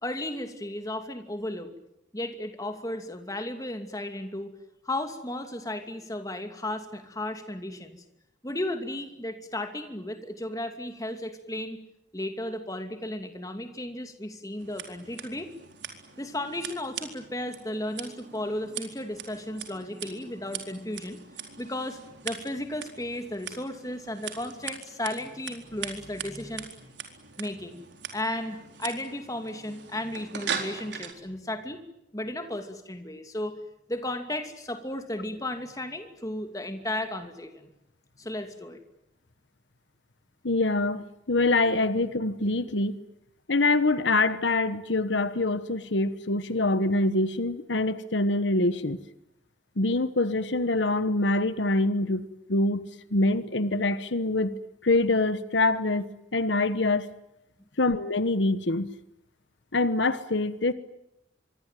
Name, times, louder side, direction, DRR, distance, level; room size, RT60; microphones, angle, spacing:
voice 1, 0.0-1.8 2.1-4.5 4.8-8.0 8.4-11.8 12.1-15.5 16.2-21.2 21.6-22.0 22.2-27.0 27.4-27.8 28.1-31.8 32.1-33.5 33.9-37.7 38.2-38.8 57.6-57.7, left 1 dB, 20° left, 7 dB, 2.6 m, -34 dB
Scissors, 14.6-31.1, right 7 dB, 75° right, 4.2 m, -41 dB
voice 2, 40.4-41.0 41.3-42.9 43.5-49.0 49.8-52.8 53.1-54.5 54.8-56.1 56.3-57.1 57.8-58.9 59.7-60.7, left 2 dB, 80° left, 13 dB, 1.3 m, -25 dB
26.0 x 24.0 x 9.3 m, 0.84 s
head